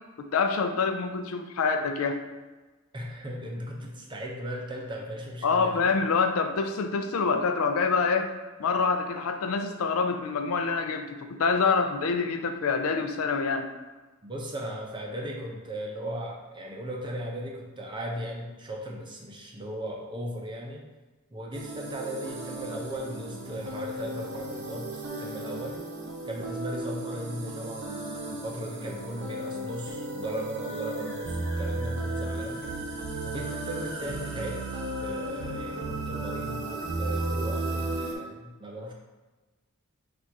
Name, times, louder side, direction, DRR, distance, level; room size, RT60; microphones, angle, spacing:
voice 1, 0.3-2.2 5.4-8.3 8.6-13.7, left 4 dB, 70° left, 7 dB, 0.4 m, -26 dB
voice 2, 2.9-5.9 14.2-20.8 21.3-25.8 26.2-32.6 33.2-34.6 35.0-38.9, equal, 20° right, -1 dB, 0.6 m, -37 dB
sound 1, 21.5-38.1, right 2 dB, 55° right, 0.8 m, -34 dB
4.3 x 2.5 x 4.6 m, 1.2 s
head